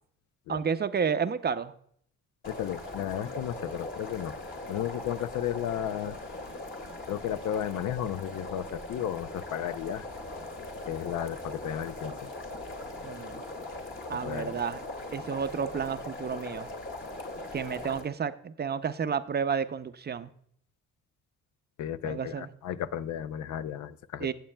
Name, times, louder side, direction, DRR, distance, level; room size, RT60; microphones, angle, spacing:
voice 1, 0.5-1.7 13.0-13.4 14.1-14.8 15.1-16.7 17.5-20.3 22.0-22.5 24.2-24.3, right 6 dB, 35° right, 11 dB, 0.6 m, -31 dB
sound 1, 2.4-18.0, left 2 dB, 40° left, 2.2 m, -40 dB
voice 2, 2.5-4.3 4.7-6.2 7.1-10.0 10.9-12.3 14.2-14.6 21.8-24.3, left 10 dB, 75° left, 14 dB, 0.6 m, -34 dB
17.5 x 7.4 x 2.2 m, 0.64 s
cardioid pair, 90°, 30 cm